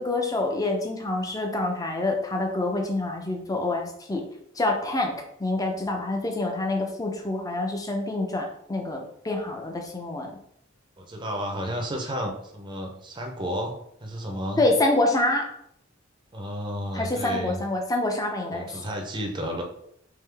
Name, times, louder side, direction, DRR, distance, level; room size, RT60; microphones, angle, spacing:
voice 1, 0.0-4.2 4.5-5.1 5.4-10.4 14.6-15.5 16.9-18.8, left 2 dB, 20° left, 2 dB, 0.6 m, -26 dB
voice 2, 11.0-14.6 16.3-17.6 18.5-19.6, equal, 25° right, 2 dB, 0.6 m, -32 dB
3.7 x 3.1 x 3.4 m, 0.71 s
head